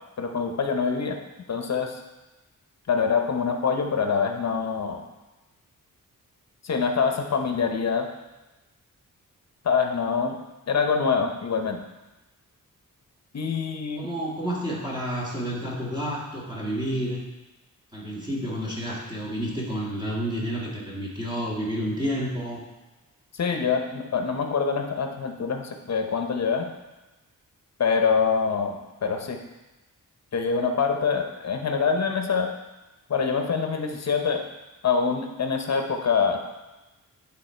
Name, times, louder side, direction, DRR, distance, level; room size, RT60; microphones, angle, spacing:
voice 1, 0.2-1.2 1.5-2.0 2.9-5.0 6.6-8.1 9.6-10.4 10.7-11.8 13.3-14.1 23.3-26.7 27.8-28.8 29.0-29.4 30.3-32.5 33.1-34.4 34.8-36.4, left 5 dB, 50° left, 4 dB, 0.9 m, -25 dB
voice 2, 14.0-17.2 17.9-22.6, equal, 15° right, -6 dB, 1.8 m, -30 dB
10.5 x 3.6 x 4.4 m, 1.1 s
wide cardioid pair, 105°, 34 cm